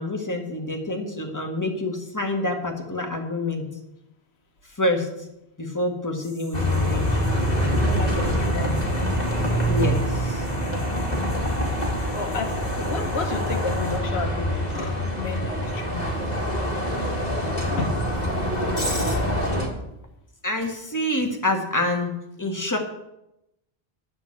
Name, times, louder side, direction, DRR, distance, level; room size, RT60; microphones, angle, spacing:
voice 1, 0.0-3.6 4.8-5.1 5.6-7.2 9.7-10.5 20.4-22.1 22.4-22.8, left 1 dB, 15° left, 2 dB, 1.7 m, -27 dB
sound 1, 6.2-14.0, equal, 20° right, 4.5 m, -49 dB
Bus, 6.5-19.7, equal, 40° left, 2.1 m, -25 dB
voice 2, 7.8-8.8 12.0-16.5 17.6-18.0, left 4 dB, 85° left, 3 dB, 1.4 m, -32 dB
9.6 x 6.8 x 8.5 m, 0.86 s
omnidirectional pair, 1.1 m